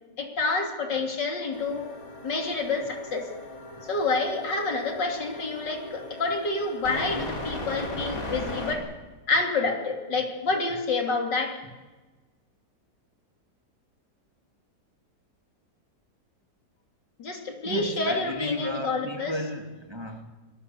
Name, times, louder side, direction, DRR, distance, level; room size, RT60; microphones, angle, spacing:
voice 1, 0.2-1.9 2.2-3.3 3.8-8.8 9.3-11.6 17.2-19.3, left 3 dB, 75° left, 3.6 m, -28 dB
sound 1, 1.5-8.7, left 1 dB, 50° left, 3.8 m, -37 dB
voice 2, 17.6-20.3, left 1 dB, 15° right, 1.6 m, -34 dB
24.0 x 21.0 x 6.9 m
omnidirectional pair, 1.9 m